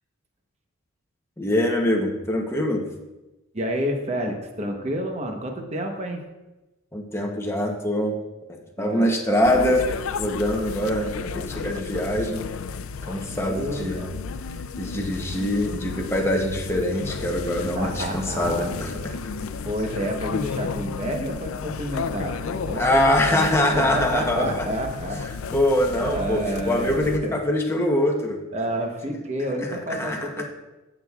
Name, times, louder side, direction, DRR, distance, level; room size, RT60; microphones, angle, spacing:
voice 1, 1.4-2.8 6.9-8.2 8.8-9.9 10.2-12.5 13.0-14.1 14.8-18.9 22.8-24.6 25.5-28.4 30.0-30.4, left 1 dB, 15° left, 0 dB, 0.8 m, -23 dB
voice 2, 3.5-6.2 8.8-9.1 13.3-14.1 17.7-18.7 19.6-23.5 23.7-25.6 26.0-27.4 28.5-30.4, right 1 dB, 35° right, 2 dB, 1.0 m, -30 dB
sound 1, 9.4-27.2, left 5 dB, 85° left, 0.4 m, -33 dB
15.0 x 6.2 x 2.4 m, 1.0 s
head